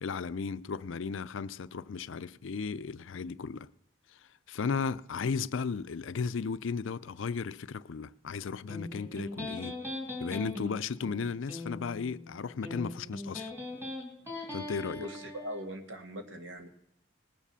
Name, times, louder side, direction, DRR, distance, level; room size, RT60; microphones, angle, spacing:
voice 1, 0.0-3.7 4.5-9.8 10.2-13.5 14.5-15.0, left 5 dB, 75° left, 0.5 m, -35 dB
Electric guitar, 8.7-15.7, left 2 dB, 10° right, 2.6 m, -40 dB
voice 2, 15.0-16.7, equal, 70° right, 1.8 m, -41 dB
19.0 x 7.4 x 6.8 m
head